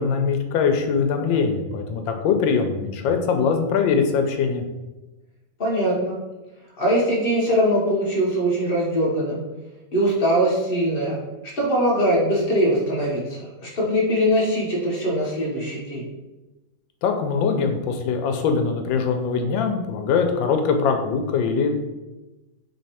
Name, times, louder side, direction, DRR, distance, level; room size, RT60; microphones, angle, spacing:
voice 1, 0.0-4.6 17.0-21.7, left 5 dB, 80° left, 5 dB, 1.3 m, -22 dB
voice 2, 5.6-6.2 6.8-9.4 9.9-11.2 11.6-16.0, equal, 45° left, -4 dB, 0.8 m, -22 dB
3.4 x 3.1 x 4.2 m, 1.1 s
omnidirectional pair, 2.0 m